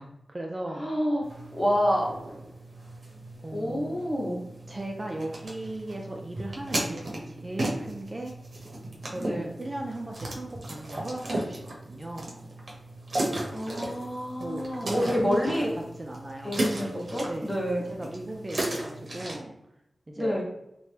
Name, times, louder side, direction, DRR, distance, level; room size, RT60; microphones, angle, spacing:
voice 1, 0.0-0.9 3.4-4.0 4.7-8.3 9.0-12.5 14.4-16.7 17.2-17.6 17.8-19.5 20.1-20.4, right 1 dB, 30° right, 1 dB, 0.3 m, -37 dB
voice 2, 0.7-2.1 3.5-4.4 9.2-9.4 13.5-15.7 16.4-17.8 20.2-20.4, equal, 15° left, -3 dB, 0.8 m, -28 dB
sound 1, 1.2-19.4, right 1 dB, 55° right, 0.7 m, -36 dB
2.8 x 2.1 x 3.2 m, 0.85 s
wide cardioid pair, 105°, 0 cm